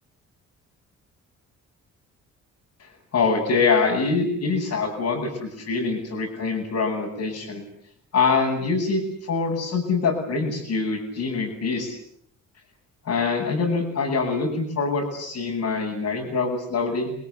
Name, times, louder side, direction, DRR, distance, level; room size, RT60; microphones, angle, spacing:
voice 1, 2.8-7.6 8.1-11.9 13.1-17.1, left 4 dB, 65° left, -4 dB, 7.9 m, -24 dB
29.0 x 20.0 x 9.7 m, 0.70 s
cardioid pair, 90°, 30 cm